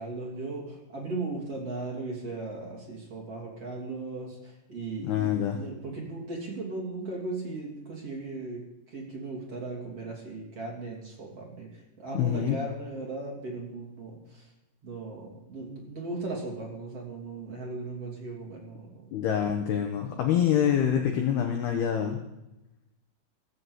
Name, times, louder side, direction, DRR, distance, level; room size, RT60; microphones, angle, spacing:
voice 1, 0.0-14.5 14.8-19.1, right 3 dB, 35° right, -2 dB, 3.3 m, -37 dB
voice 2, 5.0-5.6 12.1-12.6 19.1-22.2, left 9 dB, 75° left, 4 dB, 2.4 m, -26 dB
16.5 x 7.7 x 8.1 m, 0.92 s
omnidirectional pair, 6.0 m